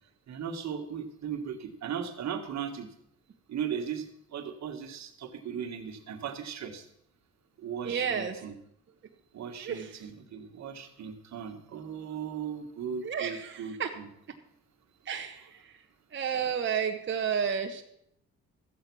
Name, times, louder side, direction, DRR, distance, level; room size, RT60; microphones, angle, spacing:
voice 1, 0.3-2.9 3.5-6.8 7.6-8.5 9.3-14.1, right 7 dB, 65° right, 6 dB, 1.7 m, -37 dB
voice 2, 7.8-8.4 9.6-10.0 13.0-13.9 15.1-15.7 16.1-17.8, right 7 dB, 40° right, 3 dB, 1.1 m, -31 dB
13.5 x 8.3 x 6.2 m, 0.75 s
cardioid pair, 90°, 30 cm